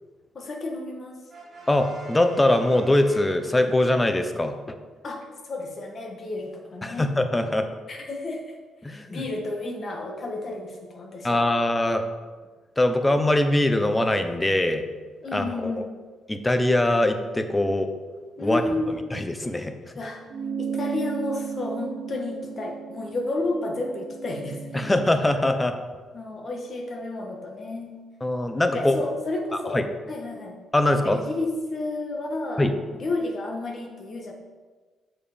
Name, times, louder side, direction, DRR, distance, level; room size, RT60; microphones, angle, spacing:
voice 1, 0.3-1.2 5.0-7.1 7.9-8.4 8.9-11.5 15.2-15.9 18.4-19.0 19.9-20.2 20.6-24.9 26.1-28.0 28.7-30.6 31.0-34.3, left 2 dB, 45° left, 1 dB, 1.5 m, -31 dB
Brass instrument, 1.3-4.0, right 2 dB, 25° right, 1.9 m, -46 dB
voice 2, 1.7-4.6 6.8-7.7 8.8-9.2 11.2-12.0 12.8-14.9 15.3-15.7 16.3-17.9 18.4-18.6 19.1-19.7 24.7-25.7 28.2-29.0 29.7-29.8 30.7-31.2 32.6-32.7, left 1 dB, 15° left, 7 dB, 0.8 m, -22 dB
sound 1, 20.3-25.1, right 6 dB, 55° right, 1.0 m, -34 dB
7.4 x 4.9 x 5.1 m, 1.4 s
cardioid pair, 90°, 0 cm